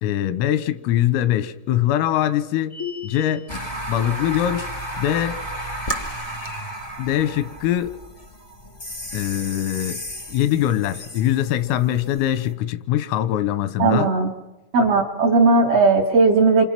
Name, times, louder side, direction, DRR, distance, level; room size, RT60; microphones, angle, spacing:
voice 1, 0.0-2.8 3.0-3.5 3.9-4.7 5.0-5.4 7.0-8.0 9.1-10.0 10.3-14.1, left 12 dB, 90° left, 13 dB, 3.7 m, -22 dB
sound 1, 2.7-3.6, left 7 dB, 55° right, 0.7 m, -34 dB
sound 2, 3.5-12.5, right 1 dB, 35° left, 0.5 m, -33 dB
voice 2, 13.8-14.3 14.7-16.6, right 3 dB, 85° right, 0 dB, 1.3 m, -17 dB
28.0 x 25.5 x 6.0 m, 1.1 s
omnidirectional pair, 5.8 m